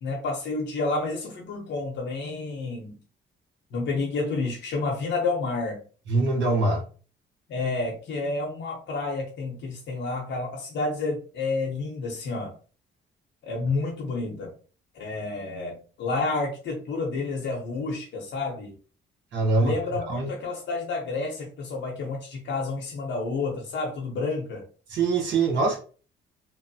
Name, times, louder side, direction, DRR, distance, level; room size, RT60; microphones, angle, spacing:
voice 1, 0.0-3.0 3.7-5.8 7.5-12.5 13.4-14.5 14.9-18.7 19.6-24.6, left 3 dB, 65° left, -1 dB, 0.8 m, -30 dB
voice 2, 6.1-6.8 19.3-19.7 20.1-20.3 24.9-25.8, right 3 dB, 65° right, 0 dB, 1.2 m, -23 dB
2.8 x 2.1 x 2.7 m, 0.39 s
cardioid pair, 90°, 20 cm